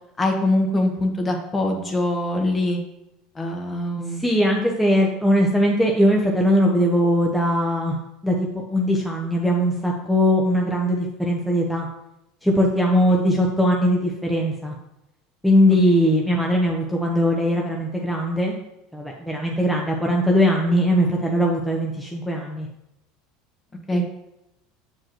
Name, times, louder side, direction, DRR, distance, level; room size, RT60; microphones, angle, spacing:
voice 1, 0.2-2.8 3.3-4.2 13.0-13.2 23.9-24.0, left 1 dB, 20° left, 2 dB, 1.3 m, -23 dB
voice 2, 4.2-8.0 8.2-11.9 12.4-14.7 15.4-18.5 18.9-22.7 23.9-24.0, equal, 5° left, -1 dB, 0.8 m, -20 dB
7.5 x 4.6 x 3.0 m, 0.90 s
supercardioid pair, 100°, 0 cm